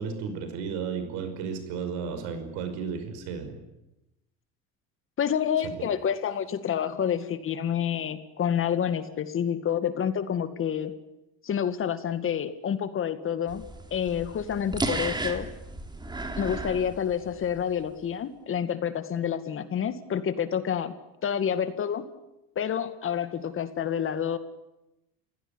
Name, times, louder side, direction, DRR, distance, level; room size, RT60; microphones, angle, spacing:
voice 1, 0.0-3.6 5.6-5.9, right 6 dB, 80° right, 8 dB, 5.4 m, -33 dB
voice 2, 5.2-10.9 11.4-13.6 13.9-15.5 16.4-20.9 21.2-22.1 22.6-24.4, left 8 dB, 45° left, 11 dB, 2.2 m, -28 dB
sound 1, 13.5-17.6, right 2 dB, 15° right, 3.2 m, -34 dB
30.0 x 16.5 x 9.9 m, 0.94 s
supercardioid pair, 100°, 29 cm